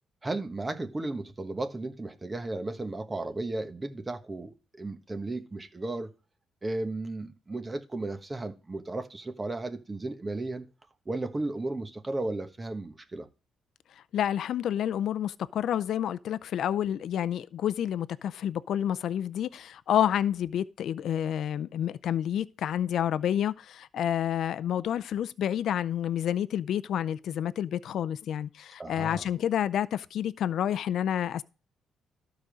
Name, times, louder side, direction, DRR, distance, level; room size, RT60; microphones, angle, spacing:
voice 1, 0.2-6.1 6.6-10.7 11.1-13.3 28.8-29.3, right 2 dB, 20° right, 1.3 m, -34 dB
voice 2, 14.0-31.4, left 10 dB, 70° left, 0.5 m, -29 dB
12.0 x 5.1 x 6.3 m
cardioid pair, 90°, 0 cm